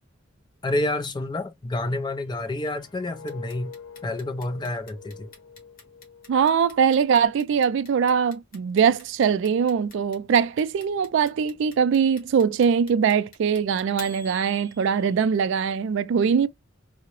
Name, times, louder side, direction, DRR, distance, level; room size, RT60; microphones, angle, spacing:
voice 1, 0.6-3.7 4.0-5.3, left 2 dB, 20° left, 0.5 m, -29 dB
sound 1, 2.2-7.2 7.6-7.9, left 6 dB, 65° left, 0.8 m, -46 dB
Clock, 3.3-15.3, left 4 dB, 45° left, 1.2 m, -46 dB
voice 2, 6.3-16.5, right 7 dB, 65° right, 0.3 m, -22 dB
3.6 x 2.0 x 2.9 m
head